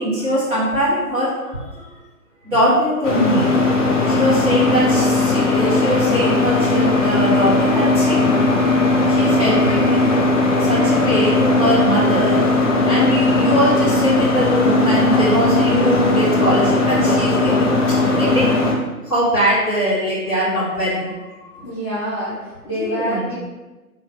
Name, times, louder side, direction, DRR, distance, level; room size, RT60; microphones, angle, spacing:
voice 1, 0.0-1.9 2.4-3.5 4.1-8.2 9.1-10.0 10.4-12.4 12.8-17.7 18.1-18.5 19.1-21.1 22.7-23.3, equal, 10° right, -11 dB, 1.3 m, -21 dB
sound 1, 3.0-18.7, left 2 dB, 55° left, 0.9 m, -17 dB
voice 2, 21.6-23.3, equal, 20° left, -13 dB, 0.7 m, -26 dB
4.0 x 3.1 x 3.2 m, 1.1 s
figure-of-eight pair, 135°, 45 cm